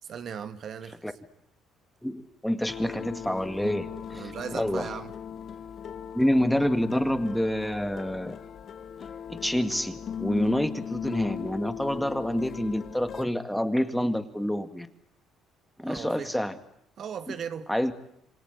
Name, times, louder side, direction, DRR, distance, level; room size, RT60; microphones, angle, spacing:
voice 1, 0.0-1.0 4.1-5.1 15.8-16.3 17.0-17.7, right 7 dB, 50° right, 1.6 m, -38 dB
voice 2, 2.0-4.9 6.1-8.4 9.3-14.9 15.8-16.5 17.7-17.9, equal, 5° left, 2.0 m, -27 dB
sound 1, 2.7-13.2, left 8 dB, 50° left, 1.0 m, -38 dB
28.0 x 25.0 x 8.2 m
cardioid pair, 105°, 0 cm